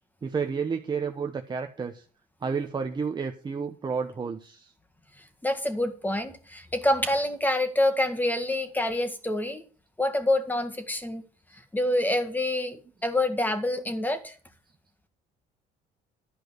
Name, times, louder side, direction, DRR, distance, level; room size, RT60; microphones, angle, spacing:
voice 1, 0.2-2.0 2.4-4.7 11.5-11.6, right 5 dB, 25° right, 5 dB, 0.9 m, -31 dB
voice 2, 5.4-9.6 10.0-11.2 11.7-14.3, left 1 dB, 10° left, 8 dB, 1.8 m, -26 dB
11.5 x 5.0 x 7.9 m, 0.39 s
cardioid pair, 110°, 17 cm